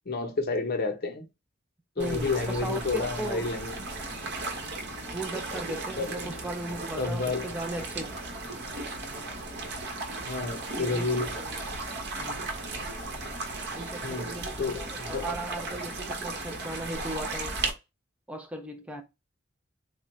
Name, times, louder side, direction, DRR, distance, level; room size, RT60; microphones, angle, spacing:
voice 1, 0.1-1.2 2.0-3.7 6.0-6.3 7.0-7.5 10.3-11.3 14.0-15.3, left 3 dB, 50° left, 0.7 m, -30 dB
voice 2, 2.0-3.5 5.1-8.2 10.8-11.1 11.4-11.6 12.2-12.5 13.8-17.6 18.3-19.0, right 1 dB, 5° right, 0.3 m, -37 dB
sound 1, 2.0-17.7, right 3 dB, 55° right, 0.9 m, -36 dB
3.5 x 2.1 x 3.0 m
head